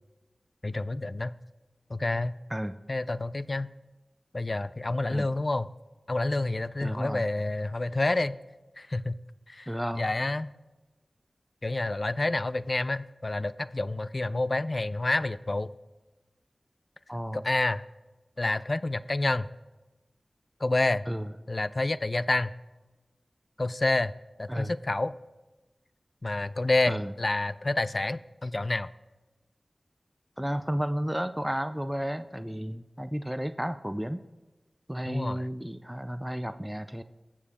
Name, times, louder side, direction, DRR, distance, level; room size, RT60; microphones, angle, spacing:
voice 1, 0.6-1.3 1.9-2.4 2.9-3.7 4.3-5.7 6.1-8.4 8.8-9.2 9.5-9.7 10.0-10.5 11.6-15.7 17.3-17.8 18.4-19.5 20.6-21.0 21.5-22.5 23.6-24.1 24.4-25.1 26.2-28.9 35.1-35.5, left 2 dB, 45° left, 16 dB, 0.4 m, -28 dB
voice 2, 6.8-7.3 9.7-10.1 17.1-17.4 21.1-21.3 24.5-24.7 26.9-27.1 30.4-34.2 34.9-37.0, equal, 5° right, 10 dB, 0.5 m, -32 dB
21.5 x 7.3 x 3.5 m, 1.1 s
wide cardioid pair, 55°, 0 cm